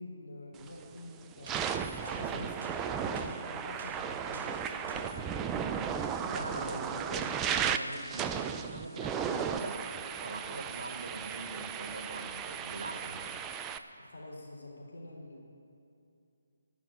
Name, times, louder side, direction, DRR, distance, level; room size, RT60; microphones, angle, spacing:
voice 1, 0.0-1.6 2.0-5.5 6.2-7.0 14.0-15.5, left 2 dB, 80° left, -1 dB, 3.7 m, -46 dB
sound 1, 0.6-0.8 1.3-13.8, right 7 dB, 15° right, 0.4 m, -35 dB
sound 2, 1.4-1.6 2.0-2.2 2.6-2.7 3.2-3.3 3.8-3.9 4.3-4.5 4.9-5.0, right 3 dB, 40° right, 2.5 m, -50 dB
voice 2, 6.2-9.8 10.2-13.3, right 2 dB, 85° right, 6 dB, 1.5 m, -42 dB
17.5 x 6.1 x 8.5 m, 2.5 s
figure-of-eight pair, 160°, 0 cm